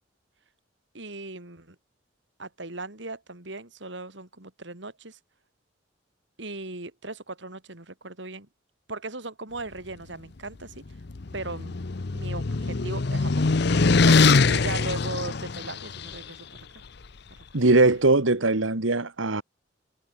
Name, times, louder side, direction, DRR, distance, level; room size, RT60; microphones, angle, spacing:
voice 1, 0.9-1.8 2.4-5.2 6.4-8.5 8.9-10.8 11.3-11.8 12.1-14.1 14.5-16.8 17.3-17.6, right 2 dB, 65° right, 3.3 m, -38 dB
sound 1, 10.9-16.1, left 4 dB, 55° left, 0.7 m, -22 dB
voice 2, 14.0-14.4 17.5-19.4, right 2 dB, 85° right, 1.7 m, -21 dB
head